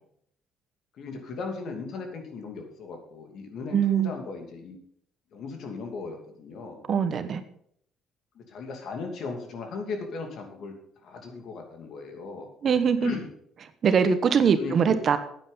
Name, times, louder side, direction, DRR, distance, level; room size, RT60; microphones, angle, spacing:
voice 1, 1.0-4.8 5.3-6.8 8.3-10.7 11.0-12.5 13.0-13.3 14.6-15.0, left 4 dB, 60° left, 4 dB, 2.7 m, -37 dB
voice 2, 3.7-4.1 6.9-7.4 12.6-13.1 13.8-15.2, right 7 dB, 45° right, 11 dB, 1.1 m, -22 dB
9.4 x 9.2 x 5.6 m, 0.68 s
cardioid pair, 95°, 0 cm